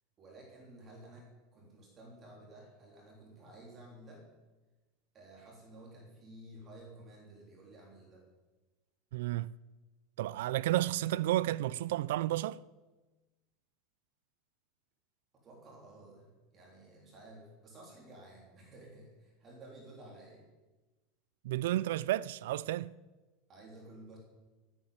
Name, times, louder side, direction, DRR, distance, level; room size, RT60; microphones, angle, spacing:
voice 1, 0.2-4.2 5.1-8.3 15.3-20.4 23.5-24.2, right 1 dB, 25° right, 3.6 m, -53 dB
voice 2, 9.1-9.5 10.2-12.6 21.4-22.9, right 14 dB, 80° right, 0.4 m, -32 dB
17.5 x 9.1 x 7.3 m
supercardioid pair, 160°, 0 cm